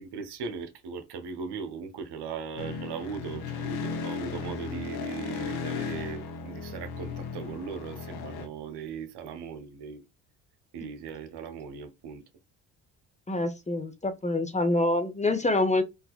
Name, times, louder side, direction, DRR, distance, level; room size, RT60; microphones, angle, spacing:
voice 1, 0.0-10.0 10.7-12.2, right 6 dB, 60° right, 1.1 m, -38 dB
sound 1, 2.6-8.5, left 5 dB, 55° left, 1.0 m, -35 dB
voice 2, 13.3-15.8, left 2 dB, 15° left, 0.9 m, -26 dB
3.9 x 2.5 x 2.4 m
hypercardioid pair, 50°, 44 cm